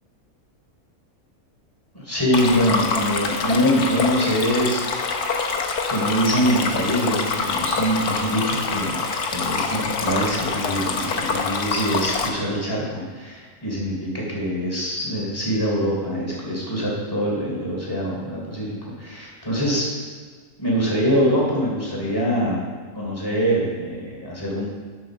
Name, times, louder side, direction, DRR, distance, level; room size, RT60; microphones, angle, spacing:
voice 1, 1.9-5.1 5.9-9.0 9.3-19.8 20.6-22.6 23.0-24.7, equal, 15° left, -4 dB, 3.5 m, -24 dB
Stream, 2.3-12.3, left 4 dB, 85° left, 1.6 m, -25 dB
11.0 x 7.7 x 6.3 m, 1.5 s
omnidirectional pair, 1.6 m